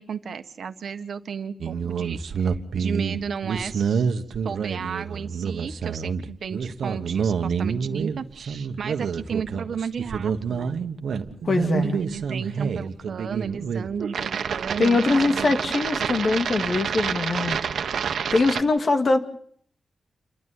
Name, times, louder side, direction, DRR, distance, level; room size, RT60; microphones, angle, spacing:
voice 1, 0.0-4.1 4.4-10.8 11.8-15.5, right 6 dB, 70° right, 9 dB, 1.5 m, -34 dB
sound 1, 1.6-18.6, right 6 dB, 85° right, 1.5 m, -28 dB
voice 2, 11.4-12.0 14.8-17.6 18.3-19.2, left 3 dB, 45° left, 7 dB, 2.4 m, -22 dB
28.5 x 12.5 x 9.5 m, 0.64 s
wide cardioid pair, 115°, 0 cm